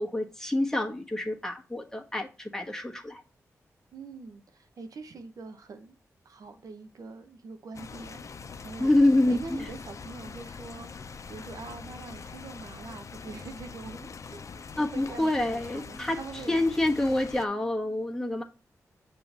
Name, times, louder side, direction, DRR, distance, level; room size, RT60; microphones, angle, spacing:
voice 1, 0.0-3.2 8.8-9.7 14.8-16.2 16.5-18.4, left 1 dB, 10° left, 1.4 m, -27 dB
voice 2, 3.9-6.0 6.2-8.9 9.3-14.6 14.9-16.6, right 4 dB, 70° right, 0.9 m, -44 dB
sound 1, 7.7-17.5, left 5 dB, 55° left, 0.5 m, -43 dB
6.7 x 3.1 x 5.5 m
cardioid pair, 45°, 6 cm